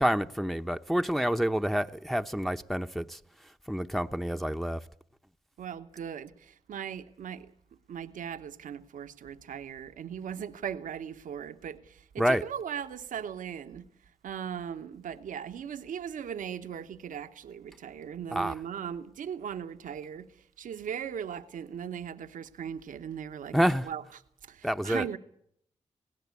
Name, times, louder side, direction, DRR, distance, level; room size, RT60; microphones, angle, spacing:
voice 1, 0.0-3.2 3.7-4.8 12.2-12.4 18.3-18.5 23.5-23.9 24.6-25.1, equal, ahead, 0.8 m, -28 dB
voice 2, 5.6-7.5 7.9-13.8 14.2-20.3 20.6-23.6 23.8-25.2, right 8 dB, 85° right, 1.0 m, -38 dB
19.5 x 17.0 x 8.3 m
supercardioid pair, 40°, 13 cm